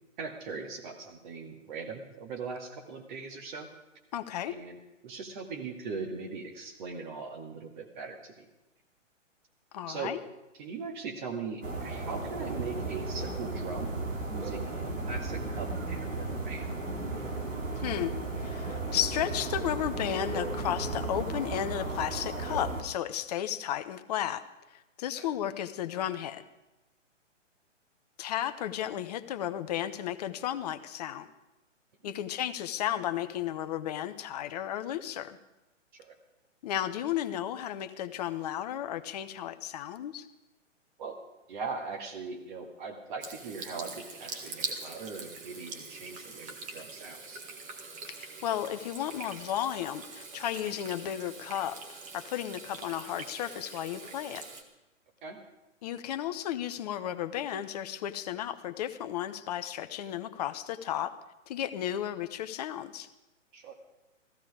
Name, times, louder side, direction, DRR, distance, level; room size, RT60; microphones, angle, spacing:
voice 1, 0.2-3.7 4.5-8.5 9.9-10.1 10.6-13.9 14.3-16.7 25.2-25.3 32.0-32.1 35.9-36.2 41.0-41.2 41.5-47.4 55.2-55.4 63.5-63.7, right 4 dB, 40° right, 2 dB, 2.1 m, -40 dB
voice 2, 4.1-4.5 9.7-10.2 17.8-24.4 24.7-26.4 28.2-31.3 32.0-35.4 36.6-40.3 48.1-51.8 52.1-54.4 55.8-61.1 61.5-63.1, left 11 dB, 35° left, 11 dB, 0.7 m, -34 dB
sound 1, 11.6-22.8, right 3 dB, 85° right, 2.7 m, -35 dB
Water tap faucet / Sink (filling or washing), 43.2-54.6, right 4 dB, 20° right, 1.5 m, -43 dB
15.5 x 15.0 x 4.9 m, 1.0 s
figure-of-eight pair, 130°, 38 cm